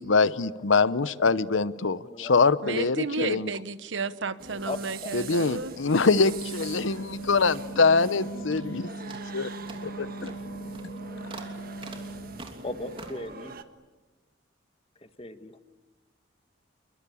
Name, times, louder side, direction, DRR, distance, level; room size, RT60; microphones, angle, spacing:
voice 1, 0.0-3.5 5.1-9.5 10.0-10.3, left 4 dB, 75° left, 16 dB, 0.8 m, -24 dB
voice 2, 0.6-0.9 1.5-2.3 4.6-5.1 6.6-7.1 12.6-13.5 15.0-15.6, left 1 dB, 30° left, 9 dB, 1.5 m, -39 dB
voice 3, 2.6-5.7, right 4 dB, 70° right, 14 dB, 1.1 m, -32 dB
sound 1, 4.4-13.6, right 4 dB, 50° right, 1.5 m, -43 dB
sound 2, 5.9-7.6 7.8-8.2 8.5-8.8 9.1-13.3, right 2 dB, 25° right, 2.9 m, -47 dB
Wind instrument woodwind instrument, 6.0-12.5, right 2 dB, 60° left, 1.4 m, -39 dB
29.0 x 23.0 x 8.5 m, 1.2 s
head